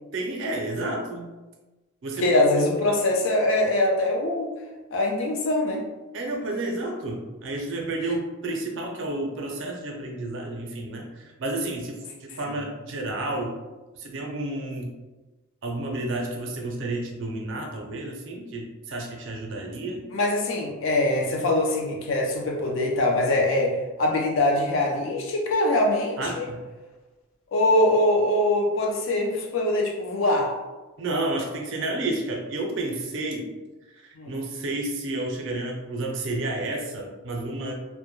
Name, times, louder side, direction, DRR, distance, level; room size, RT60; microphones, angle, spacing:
voice 1, 0.1-1.3 2.0-2.3 6.1-13.5 13.9-15.0 15.6-20.1 26.2-26.6 31.0-33.5 33.9-37.7, right 2 dB, 60° right, 1 dB, 0.5 m, -31 dB
voice 2, 2.2-4.5 4.9-5.8 20.1-26.4 27.5-30.5 34.2-34.4, left 1 dB, 65° left, 0 dB, 0.5 m, -23 dB
2.1 x 2.1 x 3.0 m, 1.2 s
head